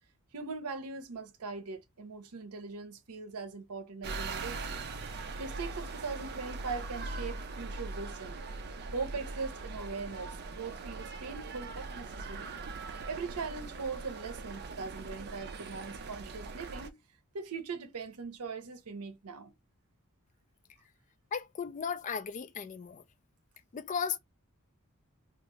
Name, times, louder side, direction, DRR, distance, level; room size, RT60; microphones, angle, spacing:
voice 1, 0.3-4.8 5.4-8.4 8.9-17.0 17.3-19.5, right 4 dB, 85° right, 0.7 m, -41 dB
sound 1, 4.0-16.9, right 3 dB, 45° right, 0.4 m, -41 dB
voice 2, 21.3-23.0 23.7-24.2, left 6 dB, 35° left, 0.3 m, -35 dB
2.7 x 2.4 x 3.1 m
head